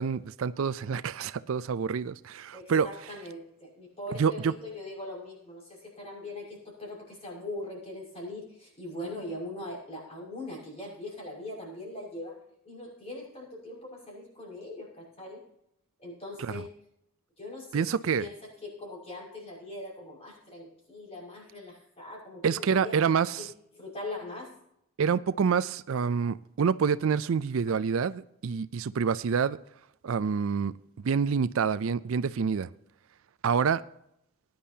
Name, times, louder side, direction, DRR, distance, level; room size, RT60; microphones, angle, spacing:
voice 1, 0.0-3.1 4.1-4.5 16.4-16.6 17.7-18.3 22.4-23.5 25.0-29.6 30.0-32.7 33.4-33.8, right 6 dB, 65° right, 0.4 m, -27 dB
voice 2, 2.5-12.4 12.6-15.4 16.0-16.7 17.4-18.3 18.6-23.0 23.4-23.5 23.7-24.5, left 1 dB, 30° left, 5.8 m, -41 dB
19.0 x 10.5 x 2.8 m
head